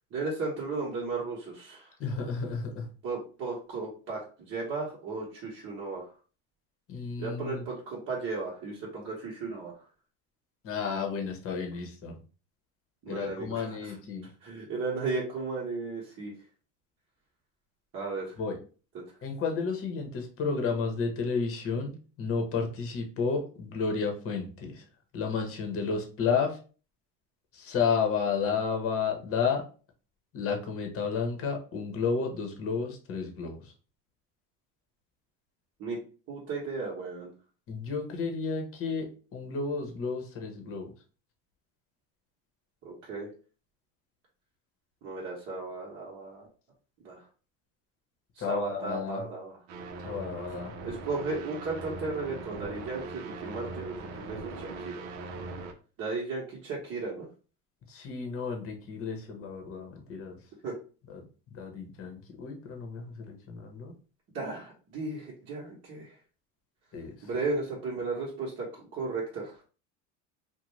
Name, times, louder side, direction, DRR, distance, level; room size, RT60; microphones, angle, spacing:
voice 1, 0.1-1.9 3.0-6.1 7.2-9.8 13.0-13.9 14.4-16.3 17.9-18.4 18.9-19.0 35.8-36.0 36.3-37.3 42.8-43.3 45.0-46.5 47.0-47.2 48.4-49.6 50.8-55.0 56.0-57.3 60.6-60.8 64.3-66.2 67.2-69.6, right 3 dB, 40° right, -4 dB, 1.0 m, -35 dB
voice 2, 2.0-2.9 6.9-7.6 10.6-12.2 13.1-14.3 18.4-18.6 19.2-24.8 25.1-26.6 27.5-29.6 30.3-33.7 37.7-39.1 39.3-40.9 48.4-49.3 50.0-50.7 57.9-60.4 61.1-61.2 61.5-63.9 66.9-67.3, left 5 dB, 35° left, 3 dB, 0.8 m, -32 dB
sound 1, 49.7-55.7, right 3 dB, 75° right, 0.6 m, -40 dB
2.5 x 2.2 x 3.0 m, 0.37 s
supercardioid pair, 105°, 37 cm